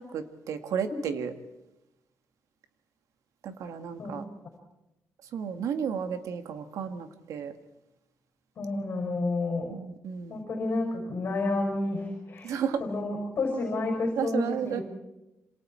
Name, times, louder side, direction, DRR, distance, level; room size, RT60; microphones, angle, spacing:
voice 1, 0.0-1.3 3.4-4.2 5.3-7.5 9.7-10.4 12.4-12.8 14.2-14.8, right 7 dB, 75° right, 8 dB, 1.9 m, -33 dB
voice 2, 8.6-9.7 10.3-14.8, left 2 dB, 45° left, 1 dB, 5.9 m, -30 dB
27.0 x 27.0 x 4.5 m, 0.94 s
cardioid pair, 165°, 6 cm